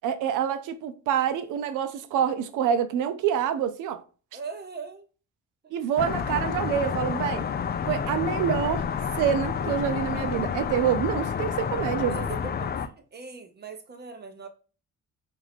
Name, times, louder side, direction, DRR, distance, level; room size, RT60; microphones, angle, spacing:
voice 1, 0.0-4.0 5.7-7.4 7.9-8.9 9.2-12.3, right 8 dB, 80° right, 0.6 m, -26 dB
voice 2, 4.3-5.1 5.6-5.7 12.1-14.5, right 4 dB, 35° right, 0.7 m, -40 dB
sound 1, 6.0-12.9, left 7 dB, 35° left, 0.4 m, -29 dB
4.0 x 2.5 x 3.3 m
cardioid pair, 90°, 30 cm